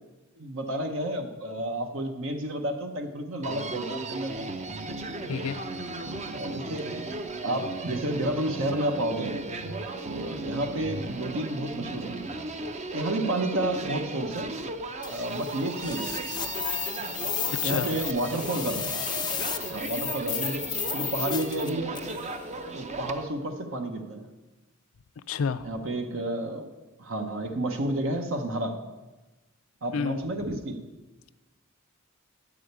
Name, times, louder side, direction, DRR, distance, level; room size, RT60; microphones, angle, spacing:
voice 1, 0.4-4.5 6.3-7.0 7.4-9.4 10.1-12.2 12.9-14.5 15.1-16.4 17.6-19.0 19.7-22.0 22.7-24.3 25.6-26.7 27.0-28.8 29.8-30.8, right 1 dB, 65° right, 5 dB, 0.9 m, -31 dB
Human voice, 3.4-23.2, right 3 dB, 35° right, 0.6 m, -36 dB
voice 2, 5.3-5.6 17.6-17.9 25.3-25.7 29.9-30.2, left 6 dB, 75° left, 12 dB, 0.4 m, -29 dB
sound 1, 15.0-22.2, left 8 dB, 20° left, 0.5 m, -33 dB
9.7 x 4.9 x 8.0 m, 1.1 s
head